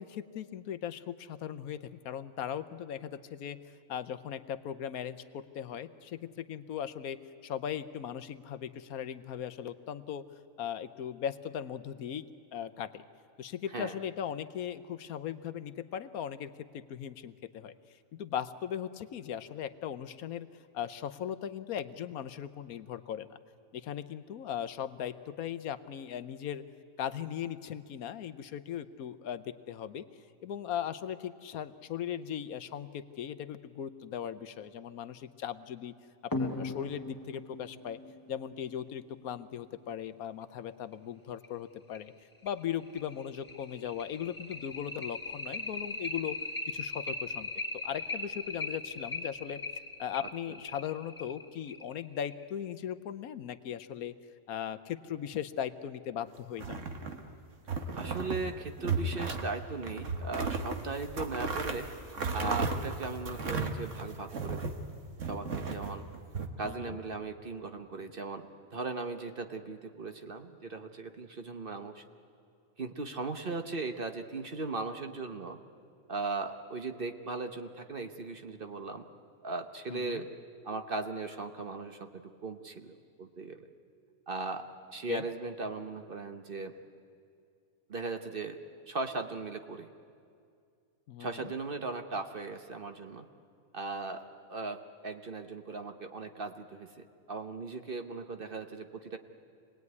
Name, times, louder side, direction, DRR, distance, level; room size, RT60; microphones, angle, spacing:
voice 1, 0.0-3.6 3.9-10.3 10.6-12.2 12.5-13.0 13.4-17.7 18.1-20.5 20.7-23.4 23.7-26.6 27.0-30.0 30.4-35.9 36.2-38.0 38.3-42.1 42.4-46.4 46.7-47.5 47.7-49.6 50.0-54.1 54.5-56.8 66.6-67.0 79.9-80.2 85.1-85.2 91.1-91.5, left 9 dB, 75° left, 12 dB, 1.2 m, -38 dB
sound 1, 36.3-39.5 40.9-41.0 41.4-41.5 41.9-42.0 42.5-52.5, left 2 dB, 15° left, 1.1 m, -39 dB
sound 2, 56.5-57.3 57.7-58.4 58.8-59.5 59.8-64.8 65.2-66.5, right 4 dB, 55° right, 1.7 m, -34 dB
voice 2, 58.0-61.9 62.3-64.8 65.3-66.1 66.6-72.0 72.8-75.6 76.1-79.0 79.4-80.3 80.6-83.6 84.3-84.6 84.9-86.7 87.9-88.6 88.9-89.9 91.2-93.3 93.7-99.2, right 3 dB, 40° right, 7 dB, 1.1 m, -38 dB
26.5 x 19.0 x 9.6 m, 2.3 s
omnidirectional pair, 1.5 m